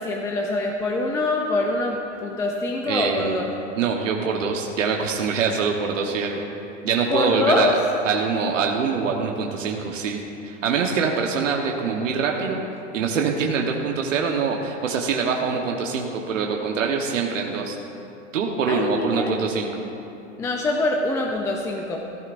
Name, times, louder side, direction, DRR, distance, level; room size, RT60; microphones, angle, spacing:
voice 1, 0.0-3.5 7.1-7.7 18.7-19.3 20.4-22.0, left 2 dB, 10° left, 1 dB, 0.4 m, -24 dB
voice 2, 2.9-3.5 3.8-6.5 6.8-7.7 8.0-12.6 12.9-17.8 18.3-19.8, right 5 dB, 85° right, 1 dB, 1.3 m, -24 dB
15.5 x 14.0 x 2.6 m, 2.9 s
hypercardioid pair, 130°, 37 cm